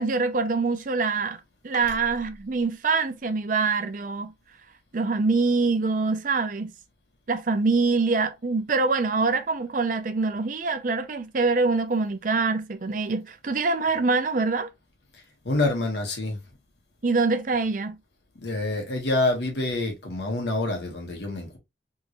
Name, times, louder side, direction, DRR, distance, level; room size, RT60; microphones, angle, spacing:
voice 1, 0.0-1.4 1.6-4.3 4.9-6.7 7.3-14.7 17.0-18.0, right 4 dB, 50° right, 0.6 m, -24 dB
voice 2, 15.4-16.4 18.4-21.6, left 2 dB, 80° left, 1.5 m, -27 dB
3.6 x 3.1 x 2.6 m
head